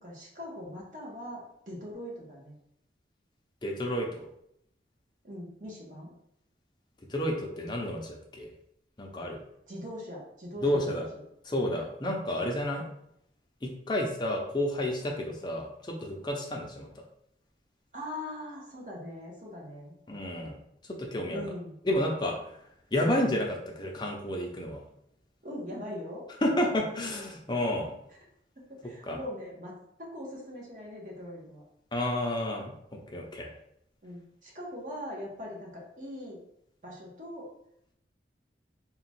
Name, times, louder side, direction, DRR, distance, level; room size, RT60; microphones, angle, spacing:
voice 1, 0.0-2.6 5.2-6.1 9.7-11.0 17.9-19.9 21.3-21.8 25.4-26.2 28.5-31.6 34.0-36.4 36.8-37.5, left 1 dB, 45° right, -3 dB, 1.2 m, -41 dB
voice 2, 3.6-4.3 7.1-8.5 9.0-9.4 10.6-11.1 11.4-12.8 13.6-17.0 20.1-20.6 20.8-21.5 21.8-22.6 22.9-24.8 26.4-27.9 29.0-29.2 31.9-33.5, left 1 dB, 25° left, 0 dB, 0.6 m, -31 dB
3.8 x 2.3 x 4.3 m, 0.75 s
head